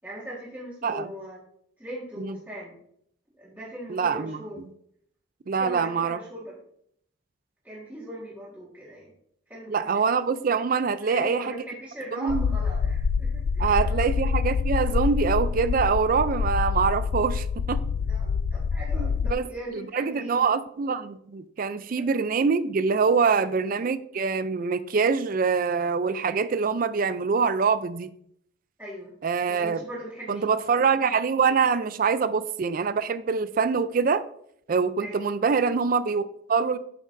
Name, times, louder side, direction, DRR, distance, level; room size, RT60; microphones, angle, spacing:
voice 1, 0.0-1.4 1.8-2.8 3.4-4.6 5.6-6.6 7.6-9.1 9.5-10.0 11.0-14.1 18.0-20.5 23.3-23.5 28.8-29.1 29.5-30.5 35.0-35.3, equal, 10° right, 1.6 m, -39 dB
voice 2, 3.9-4.4 5.5-6.2 9.7-11.4 12.2-12.6 13.6-17.8 19.0-28.1 29.2-29.8 30.3-34.3 34.7-36.8, right 5 dB, 40° right, 0.4 m, -24 dB
sound 1, 12.3-19.3, left 5 dB, 75° left, 0.3 m, -26 dB
8.8 x 6.3 x 2.6 m
head